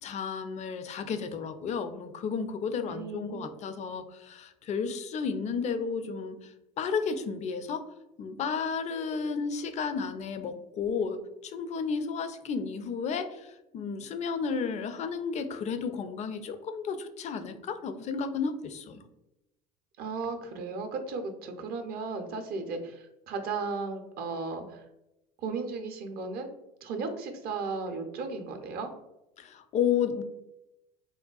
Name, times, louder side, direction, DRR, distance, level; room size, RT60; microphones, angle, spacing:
voice 1, 0.0-7.9 8.2-19.0 29.4-30.2, left 6 dB, 35° left, 9 dB, 0.4 m, -32 dB
voice 2, 2.9-3.8 20.0-24.8 25.4-26.5 26.8-28.9, right 4 dB, 50° right, 6 dB, 0.6 m, -35 dB
3.6 x 2.2 x 2.3 m, 0.91 s
hypercardioid pair, 70°, 21 cm